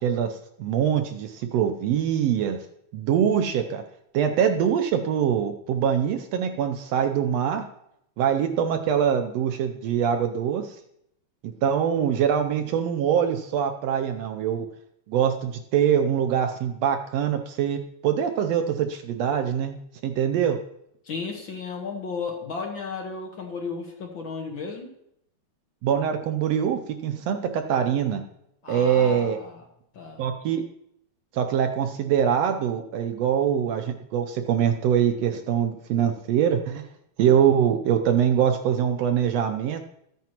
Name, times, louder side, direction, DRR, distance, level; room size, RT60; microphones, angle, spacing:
voice 1, 0.0-2.6 2.9-3.8 4.1-7.6 8.2-10.8 11.6-14.7 15.1-19.8 20.0-20.6 25.8-28.2 28.7-29.4 30.2-30.6 31.3-36.8 37.2-39.9, right 8 dB, 75° right, 7 dB, 1.6 m, -23 dB
voice 2, 21.0-24.9 28.6-29.6 29.9-30.3, left 4 dB, 50° left, 1 dB, 1.7 m, -34 dB
14.0 x 9.2 x 3.0 m, 0.77 s
omnidirectional pair, 3.3 m